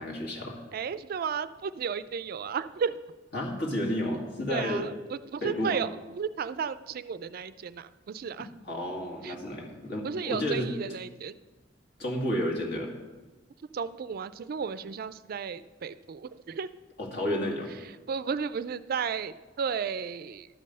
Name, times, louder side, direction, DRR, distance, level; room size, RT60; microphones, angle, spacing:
voice 1, 0.0-0.6 3.3-4.9 5.4-5.8 8.6-10.7 12.0-12.9 17.0-17.7, equal, 60° left, -1 dB, 2.0 m, -31 dB
voice 2, 0.7-3.0 4.5-5.9 6.2-8.5 9.2-9.3 10.0-11.3 13.7-16.7 18.1-20.5, right 6 dB, 50° right, 14 dB, 0.3 m, -33 dB
12.0 x 5.4 x 6.5 m, 1.2 s
head